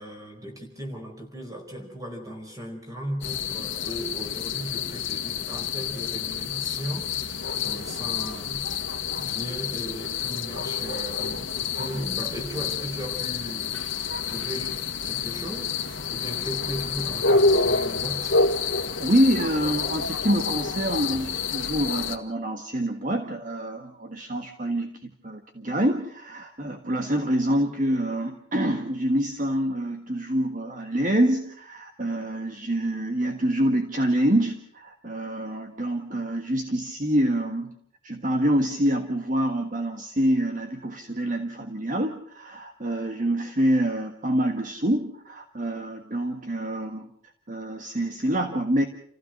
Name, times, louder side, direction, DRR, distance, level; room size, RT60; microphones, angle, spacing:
voice 1, 0.0-8.7 9.1-15.7 16.1-18.4, equal, 15° right, 3 dB, 4.8 m, -37 dB
sound 1, 3.2-22.2, left 4 dB, 65° left, 1.7 m, -28 dB
voice 2, 19.0-37.7 38.0-47.1 47.5-48.8, right 1 dB, 40° right, 5 dB, 1.5 m, -26 dB
29.0 x 15.5 x 6.4 m, 0.65 s
head